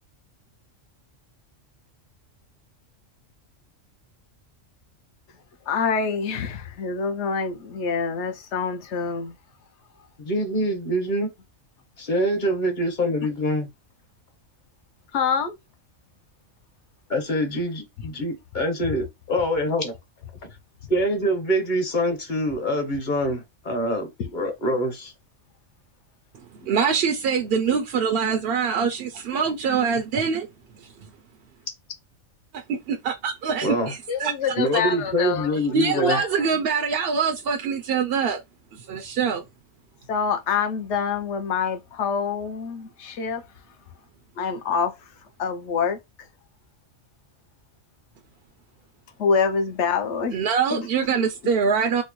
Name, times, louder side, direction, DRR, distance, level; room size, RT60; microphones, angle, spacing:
voice 1, 5.7-9.4 15.1-15.6 24.2-24.3 26.6-26.7 34.1-36.5 40.1-43.4 44.4-45.0 45.4-46.0 49.2-50.4 50.7-50.9 51.2-51.3, left 6 dB, 65° left, 0.9 m, -26 dB
voice 2, 10.2-11.3 12.0-13.7 17.1-19.9 20.9-25.1 33.6-33.9 34.6-36.2, equal, 40° left, 1.0 m, -25 dB
voice 3, 26.7-30.5 32.7-34.5 35.7-38.4 38.7-39.4 50.3-52.0, right 6 dB, 65° right, 0.6 m, -24 dB
4.3 x 2.1 x 3.0 m
omnidirectional pair, 1.3 m